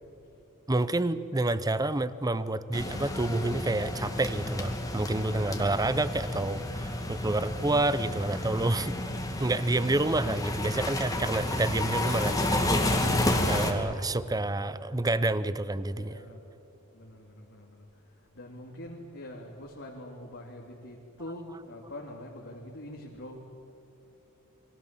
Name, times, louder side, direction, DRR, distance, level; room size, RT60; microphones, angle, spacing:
voice 1, 0.7-8.9 9.4-16.2 21.5-21.6, right 2 dB, 15° right, 15 dB, 0.8 m, -29 dB
sound 1, 2.7-13.7, left 1 dB, 15° left, 2.3 m, -31 dB
voice 2, 15.9-16.4 16.9-17.8 18.3-23.4, left 1 dB, 60° left, -2 dB, 2.8 m, -44 dB
29.5 x 23.0 x 7.5 m, 2.8 s
head